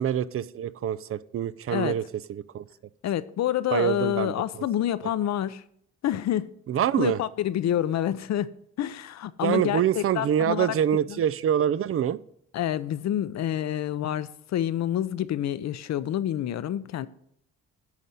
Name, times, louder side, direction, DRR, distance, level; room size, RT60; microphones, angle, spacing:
voice 1, 0.0-2.0 2.3-2.6 3.7-4.3 6.7-7.2 9.4-12.2, right 10 dB, 50° right, 0.5 m, -25 dB
voice 2, 3.0-5.6 6.0-6.5 7.0-8.5 8.8-10.8 11.1-11.2 12.5-17.1, left 11 dB, 60° left, 0.6 m, -28 dB
11.0 x 4.2 x 7.5 m
cardioid pair, 90°, 30 cm